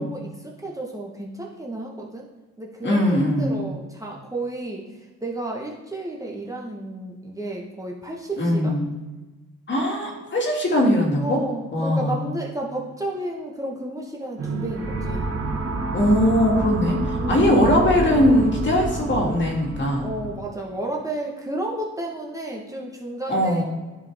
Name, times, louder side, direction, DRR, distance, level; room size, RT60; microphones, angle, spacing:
voice 1, 0.0-2.2 2.6-4.8 5.2-8.7 11.2-15.2 17.2-17.7 20.0-23.6, right 1 dB, 10° right, -2 dB, 1.3 m, -32 dB
voice 2, 2.8-3.6 8.4-8.9 9.7-11.4 11.7-12.2 15.9-20.1 23.3-23.6, left 1 dB, 40° left, 0 dB, 2.1 m, -20 dB
sound 1, 14.4-20.4, right 2 dB, 50° right, 1.4 m, -28 dB
10.5 x 5.1 x 3.5 m, 1.2 s
cardioid pair, 90°, 30 cm